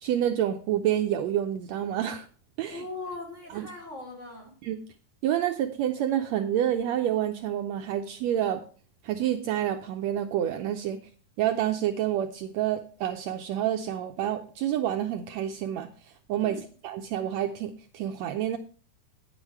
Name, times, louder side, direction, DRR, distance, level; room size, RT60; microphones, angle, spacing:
voice 1, 0.0-2.3 2.6-2.8 3.5-3.7 4.6-4.8 5.2-8.6 9.0-11.0 11.4-15.9 16.3-18.6, right 11 dB, 80° right, 7 dB, 1.7 m, -28 dB
voice 2, 2.7-4.5 16.4-16.6, left 3 dB, 25° left, -2 dB, 3.3 m, -39 dB
9.7 x 8.2 x 4.6 m, 0.40 s
omnidirectional pair, 3.5 m